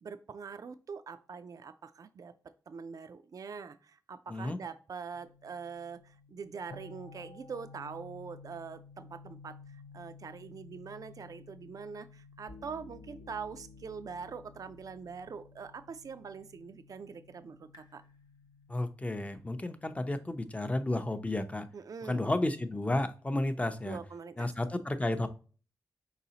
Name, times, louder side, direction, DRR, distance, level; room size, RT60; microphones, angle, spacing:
voice 1, 0.0-2.3 2.7-18.0 21.7-22.3 23.9-24.5, right 5 dB, 55° right, 11 dB, 0.4 m, -44 dB
sound 1, 5.1-20.2, left 4 dB, 90° left, 0.8 m, -54 dB
voice 2, 18.7-21.6 22.0-24.0 24.4-25.3, left 1 dB, 20° left, 9 dB, 0.6 m, -32 dB
4.7 x 4.0 x 2.8 m, 0.37 s
cardioid pair, 65°, 7 cm